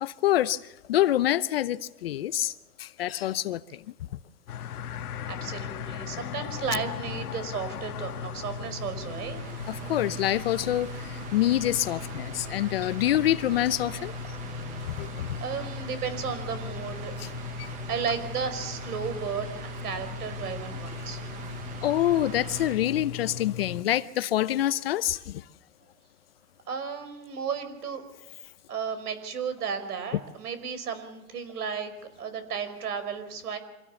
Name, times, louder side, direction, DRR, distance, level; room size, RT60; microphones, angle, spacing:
voice 1, 0.0-3.8 9.7-14.1 14.8-15.3 17.2-17.3 17.6-17.7 21.8-25.4, left 13 dB, 40° left, 0.6 m, -26 dB
sound 1, 4.5-23.8, left 8 dB, 70° left, 1.7 m, -38 dB
voice 2, 5.3-9.4 15.0-17.1 17.7-21.2 26.7-28.0 28.7-31.9 32.2-33.6, right 6 dB, 70° right, 5.2 m, -34 dB
sound 2, 7.9-22.8, right 8 dB, 15° right, 0.9 m, -43 dB
26.0 x 17.0 x 7.1 m
hypercardioid pair, 155°, 47 cm